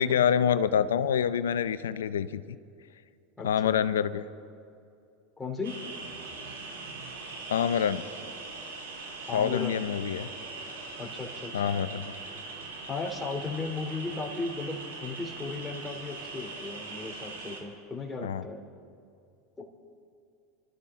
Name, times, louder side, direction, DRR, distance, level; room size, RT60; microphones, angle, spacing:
voice 1, 0.0-2.4 3.4-4.2 7.5-8.0 9.3-10.3 11.5-12.1 18.2-18.4, left 8 dB, 85° left, 14 dB, 0.6 m, -26 dB
voice 2, 3.4-3.8 5.4-5.8 9.3-9.8 11.0-11.7 12.9-18.6 19.6-19.7, left 3 dB, 10° left, 0 dB, 2.8 m, -36 dB
sound 1, 5.6-17.6, right 3 dB, 85° right, 2.7 m, -41 dB
28.0 x 13.5 x 3.7 m, 2.4 s
hypercardioid pair, 95°, 0 cm